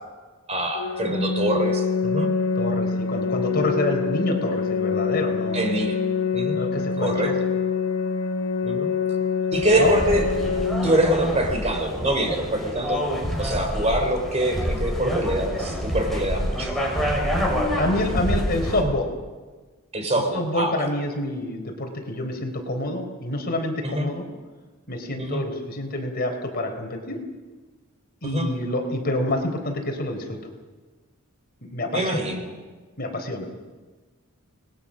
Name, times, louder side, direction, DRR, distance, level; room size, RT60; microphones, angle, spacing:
voice 1, 0.5-2.3 5.5-6.0 6.3-6.6 7.0-7.4 8.6-8.9 9.5-10.2 10.8-13.0 13.4-16.7 19.9-20.8 23.8-24.1 25.2-25.4 28.2-28.5 31.9-32.5, right 1 dB, 30° right, 5 dB, 3.7 m, -24 dB
Organ, 0.8-11.8, left 5 dB, 80° left, 2.1 m, -26 dB
voice 2, 2.6-5.6 6.5-7.3 9.8-9.9 17.8-19.1 20.3-24.3 24.9-27.2 28.2-30.4 31.6-32.3 33.0-33.5, left 1 dB, 45° left, 3 dB, 3.9 m, -27 dB
sound 1, 9.5-18.8, equal, ahead, 5.9 m, -27 dB
28.5 x 20.5 x 6.4 m, 1.3 s
head